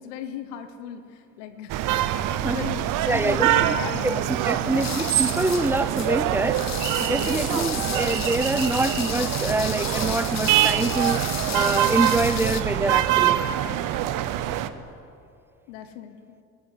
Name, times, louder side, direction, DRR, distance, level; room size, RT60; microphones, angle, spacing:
voice 1, 0.0-2.1 2.4-4.9 7.1-7.5 13.6-13.8 15.7-16.4, left 9 dB, 75° left, 9 dB, 1.0 m, -37 dB
sound 1, 1.7-14.7, right 12 dB, 60° right, 0.8 m, -24 dB
voice 2, 3.1-3.8 4.0-4.1 4.5-6.6 7.0-11.3 11.5-13.4, right 2 dB, 5° right, 15 dB, 0.4 m, -25 dB
sound 2, 4.6-12.6, left 10 dB, 45° left, 1.2 m, -34 dB
12.5 x 8.3 x 9.2 m, 2.5 s
hypercardioid pair, 65°, 36 cm